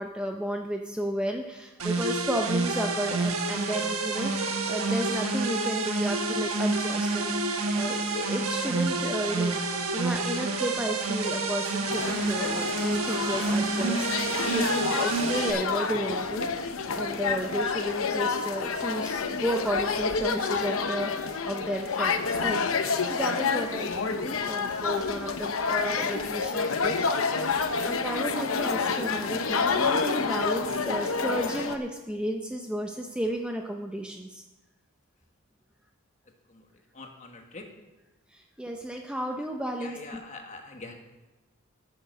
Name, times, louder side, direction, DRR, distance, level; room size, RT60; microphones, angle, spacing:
voice 1, 0.0-7.3 7.7-9.5 9.9-14.1 14.5-34.4 38.3-40.2, right 1 dB, 5° right, 2 dB, 0.6 m, -33 dB
sound 1, 1.8-15.5, right 3 dB, 80° right, 1.3 m, -28 dB
sound 2, 11.9-31.8, left 5 dB, 70° left, 0.8 m, -29 dB
voice 2, 36.9-37.7 39.8-41.0, left 3 dB, 35° left, 3 dB, 1.4 m, -43 dB
13.0 x 6.6 x 6.6 m, 1.1 s
head